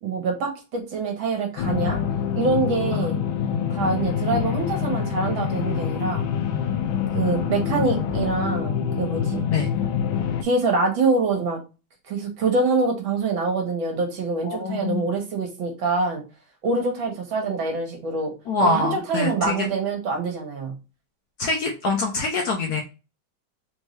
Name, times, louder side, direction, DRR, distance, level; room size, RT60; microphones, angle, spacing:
voice 1, 0.0-2.0 2.3-3.2 3.7-6.3 7.1-9.5 10.4-11.6 12.1-16.2 16.6-18.3 18.6-20.7, right 3 dB, 70° right, 2 dB, 2.0 m, -25 dB
sound 1, 1.6-10.4, left 8 dB, 80° left, 1.4 m, -26 dB
voice 2, 14.4-15.0 18.5-19.6 21.4-22.8, left 3 dB, 65° left, 2 dB, 1.0 m, -25 dB
4.5 x 2.7 x 3.1 m, 0.29 s
omnidirectional pair, 2.2 m